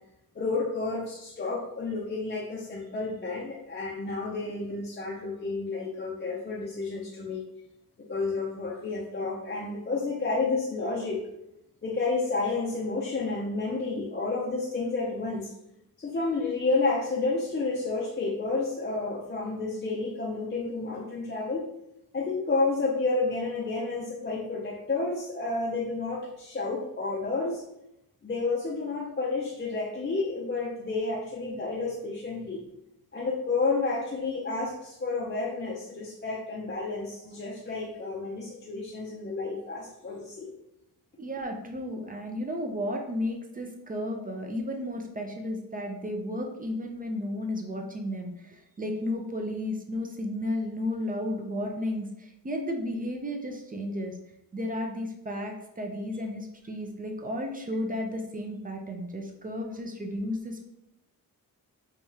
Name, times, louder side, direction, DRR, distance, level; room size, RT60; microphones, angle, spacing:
voice 1, 0.3-7.4 8.1-11.2 11.8-15.5 16.0-21.6 22.1-27.6 28.2-32.6 33.1-40.6, left 3 dB, 30° left, -3 dB, 0.5 m, -30 dB
voice 2, 41.2-54.2 54.5-60.7, left 1 dB, 25° right, 2 dB, 0.4 m, -33 dB
4.7 x 2.3 x 2.7 m, 0.83 s
wide cardioid pair, 125°, 36 cm